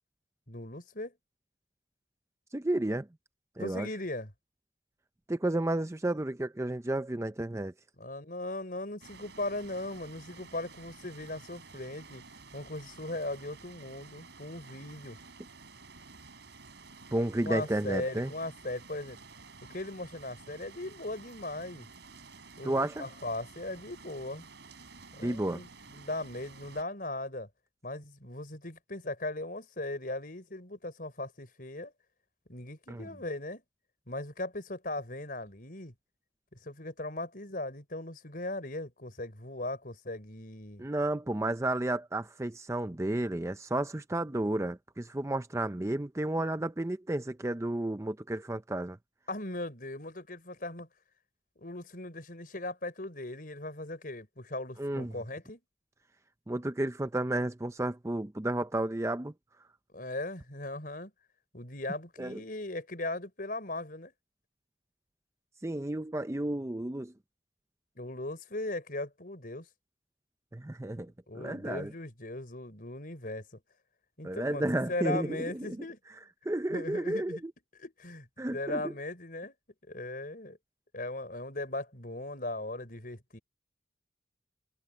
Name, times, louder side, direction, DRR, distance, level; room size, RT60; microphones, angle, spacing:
voice 1, 0.5-1.1 3.6-4.3 8.0-12.2 12.5-15.2 17.4-19.2 19.7-21.9 22.6-24.4 25.1-27.5 27.8-31.9 32.5-33.6 34.1-35.9 36.5-40.8 49.3-50.9 51.6-55.6 59.9-61.1 61.5-64.1 67.9-69.7 71.3-73.6 74.2-76.0 76.7-77.4 77.8-78.3 78.5-79.5 79.9-80.6 80.9-83.4, left 2 dB, 50° left, 5.1 m, -38 dB
voice 2, 2.5-3.1 3.6-3.9 5.3-7.7 17.1-18.3 22.6-23.0 25.2-25.6 32.9-33.0 40.8-49.0 54.8-55.1 56.5-59.3 62.2-62.4 65.6-67.1 70.5-71.9 74.2-75.8 76.5-77.4 78.4-78.9, right 1 dB, 15° right, 0.5 m, -32 dB
sound 1, 9.0-26.8, right 4 dB, 70° right, 4.0 m, -52 dB
head